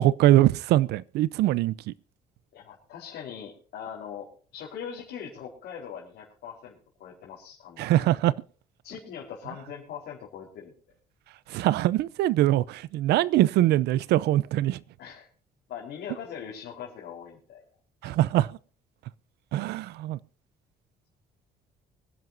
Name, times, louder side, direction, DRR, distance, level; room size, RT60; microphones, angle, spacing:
voice 1, 0.0-1.9 7.8-8.3 11.5-14.8 18.0-18.5 19.5-20.2, right 14 dB, 80° right, 0.7 m, -22 dB
voice 2, 2.5-8.3 8.8-10.7 15.0-15.3 15.7-17.6 18.0-18.1, left 8 dB, 75° left, 4.4 m, -41 dB
25.0 x 10.5 x 2.7 m
cardioid pair, 110°, 17 cm